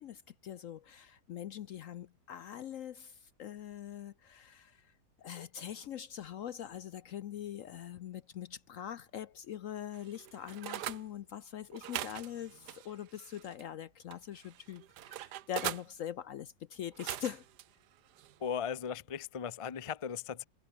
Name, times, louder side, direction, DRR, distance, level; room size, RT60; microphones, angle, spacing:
voice 1, 0.0-4.9 5.2-17.4, left 10 dB, 65° left, 0.9 m, -43 dB
sound 1, 9.9-11.0 11.7-13.7 14.1-15.9 16.8-17.6 18.1-18.4, right 13 dB, 80° right, 1.3 m, -42 dB
voice 2, 18.4-20.4, left 7 dB, 35° left, 0.5 m, -37 dB
omnidirectional pair, 1.8 m